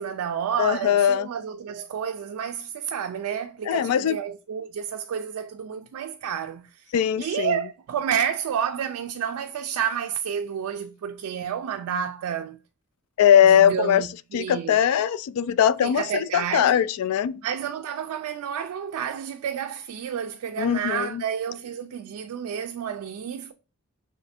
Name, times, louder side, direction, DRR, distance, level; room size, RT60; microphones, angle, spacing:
voice 1, 0.0-6.9 7.2-12.6 13.4-14.7 15.8-16.8 17.4-23.5, right 8 dB, 85° right, 0.3 m, -30 dB
voice 2, 0.6-1.3 3.7-4.2 6.9-7.6 13.2-14.1 14.3-17.4 20.6-21.2, left 9 dB, 85° left, 0.3 m, -20 dB
3.2 x 3.2 x 4.1 m
head